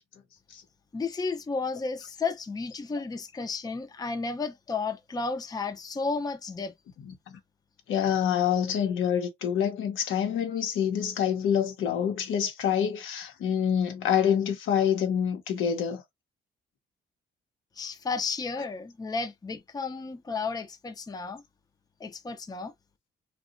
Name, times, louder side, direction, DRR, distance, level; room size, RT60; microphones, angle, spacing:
voice 1, 0.9-6.7 17.8-21.4 22.0-22.7, left 4 dB, 20° left, 0.6 m, -33 dB
voice 2, 7.9-16.0, left 8 dB, 80° left, 1.0 m, -26 dB
2.8 x 2.4 x 2.5 m
cardioid pair, 90°, 20 cm